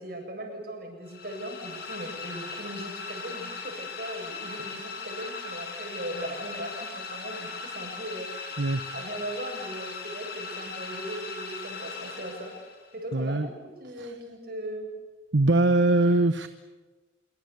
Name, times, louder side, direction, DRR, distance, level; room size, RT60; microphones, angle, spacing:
voice 1, 0.0-12.5 12.9-14.9, right 1 dB, 50° right, 2 dB, 7.5 m, -38 dB
sound 1, 1.1-12.9, left 4 dB, 55° left, 6.9 m, -39 dB
voice 2, 13.1-13.5 14.0-14.1 15.3-16.5, right 2 dB, 70° right, 11 dB, 1.0 m, -22 dB
26.0 x 24.5 x 8.4 m, 1.3 s
head